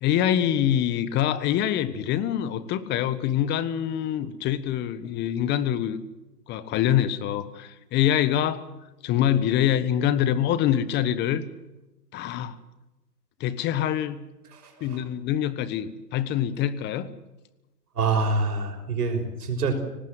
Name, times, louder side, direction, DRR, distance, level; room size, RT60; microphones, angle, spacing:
voice 1, 0.0-6.0 6.5-8.6 9.0-11.4 12.1-12.6 13.4-14.2 14.8-17.1, left 10 dB, 20° left, 15 dB, 1.3 m, -25 dB
voice 2, 18.0-19.7, right 4 dB, 70° right, 5 dB, 6.2 m, -25 dB
24.5 x 19.0 x 7.8 m, 1.0 s
hypercardioid pair, 125°, 47 cm